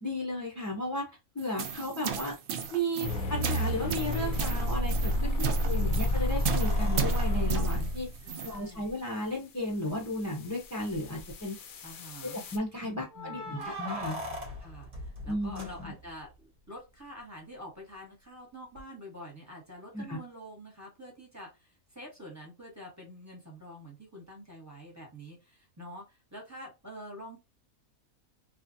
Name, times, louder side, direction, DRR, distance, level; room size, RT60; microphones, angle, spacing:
voice 1, 0.0-1.0 1.3-2.3 2.7-8.1 8.4-11.6 12.2-14.2 15.3-15.9 19.9-20.2, left 1 dB, 20° left, -1 dB, 0.6 m, -34 dB
sound 1, 1.4-8.6, right 7 dB, 80° right, 0.4 m, -36 dB
sound 2, 3.0-8.2 10.0-12.6, equal, 75° left, 1.0 m, -30 dB
voice 2, 5.1-5.9 8.2-8.9 11.8-12.4 12.8-13.7 14.6-14.9 15.2-16.3 16.7-27.4, equal, 15° right, -2 dB, 1.0 m, -47 dB
sound 3, 6.5-8.9 9.9-10.0 10.3-10.4 10.9-11.4 13.1-16.3 18.8-18.9, left 1 dB, 40° right, 0.7 m, -41 dB
3.0 x 2.4 x 2.6 m, 0.25 s
omnidirectional pair, 1.5 m